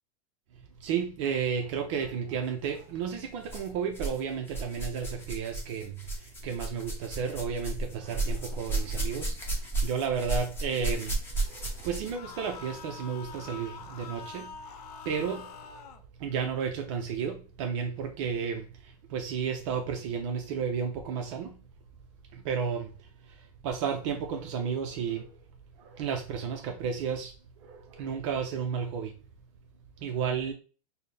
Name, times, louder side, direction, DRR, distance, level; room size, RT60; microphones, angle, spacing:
voice 1, 0.5-21.6 22.3-25.4 25.8-29.2 30.0-30.5, right 6 dB, 50° right, 0.6 m, -33 dB
sound 1, 2.5-2.7 3.5-4.2 4.5-12.3 13.2-13.3 14.1-14.2, right 2 dB, 10° left, 0.9 m, -33 dB
sound 2, 12.0-16.0, left 6 dB, 85° left, 0.5 m, -45 dB
4.2 x 2.1 x 3.3 m
supercardioid pair, 145°, 20 cm